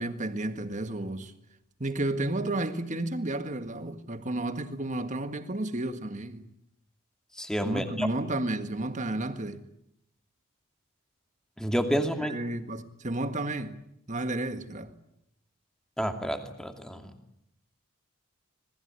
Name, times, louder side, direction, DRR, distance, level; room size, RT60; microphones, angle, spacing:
voice 1, 0.0-1.3 1.8-6.5 7.6-9.6 12.2-13.8 14.1-14.9, right 2 dB, 35° right, 1.7 m, -32 dB
voice 2, 7.4-8.1 11.6-12.4 16.0-17.1, equal, 5° left, 2.5 m, -29 dB
26.5 x 20.0 x 9.6 m
head